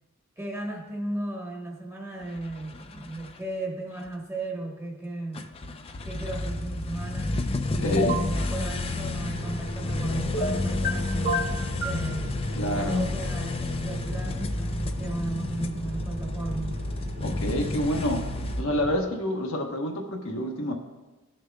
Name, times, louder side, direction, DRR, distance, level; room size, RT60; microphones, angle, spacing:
voice 1, 0.4-7.3 7.7-11.5 11.8-12.4 12.8-16.8, right 2 dB, 15° right, -1 dB, 1.1 m, -35 dB
sound 1, 2.2-3.3 4.1-4.2 5.3-18.6, left 2 dB, 25° left, 0.4 m, -31 dB
voice 2, 7.8-8.2 12.5-13.1 17.2-18.3 18.6-20.7, equal, 70° left, 1 dB, 1.1 m, -28 dB
sound 2, 7.9-8.3 10.3-10.9 11.2-12.0, left 1 dB, 50° left, 1.0 m, -27 dB
sound 3, 7.9-19.0, equal, 60° right, 2.5 m, -39 dB
17.5 x 6.4 x 2.2 m, 1.2 s
head